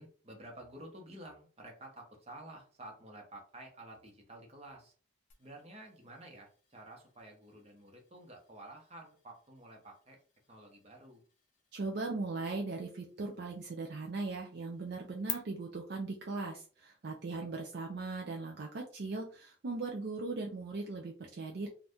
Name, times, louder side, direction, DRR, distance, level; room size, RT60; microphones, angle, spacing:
voice 1, 0.0-4.9 5.4-10.2 10.5-11.2 17.3-17.5, right 1 dB, 30° right, 1 dB, 0.9 m, -51 dB
sound 1, 5.3-15.3, left 11 dB, 40° left, 0.5 m, -52 dB
voice 2, 11.7-21.7, right 3 dB, 55° right, 1 dB, 0.4 m, -39 dB
2.7 x 2.4 x 3.4 m, 0.40 s
head